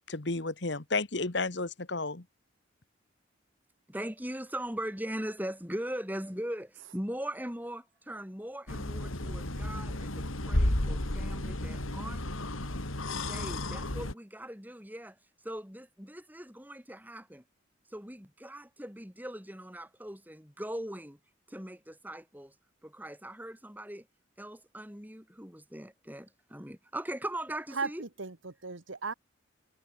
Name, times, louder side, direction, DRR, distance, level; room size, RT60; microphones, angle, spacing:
voice 1, 0.1-2.2, left 3 dB, 60° left, 1.6 m, -32 dB
voice 2, 3.9-12.2 13.3-15.2 15.4-17.4 17.9-21.2 21.5-22.5 22.8-24.1 24.4-28.0, right 1 dB, 10° right, 5.9 m, -40 dB
sound 1, 8.7-14.1, left 1 dB, 90° left, 3.5 m, -32 dB
voice 3, 27.7-29.1, right 4 dB, 75° right, 1.7 m, -36 dB
head